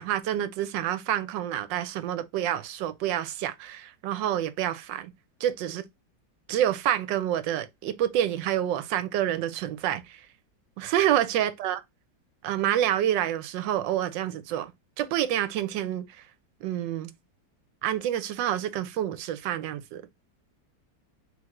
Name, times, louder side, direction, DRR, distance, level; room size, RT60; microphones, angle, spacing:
voice 1, 0.0-5.1 5.4-5.8 6.5-10.2 10.8-11.8 12.4-14.7 15.0-16.0 16.6-17.1 17.8-20.0, right 11 dB, 85° right, 1.3 m, -28 dB
3.3 x 3.3 x 3.6 m
omnidirectional pair, 1.9 m